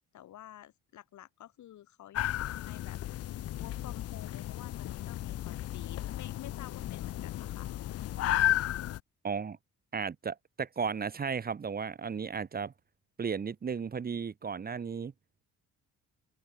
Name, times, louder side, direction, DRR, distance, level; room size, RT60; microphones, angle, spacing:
voice 1, 0.1-3.0 3.6-7.7, left 12 dB, 70° left, 1.8 m, -51 dB
sound 1, 2.1-9.0, left 14 dB, 55° left, 0.5 m, -34 dB
voice 2, 9.2-9.6 9.9-12.7 13.2-15.1, right 6 dB, 30° right, 0.8 m, -34 dB
cardioid pair, 90°, 30 cm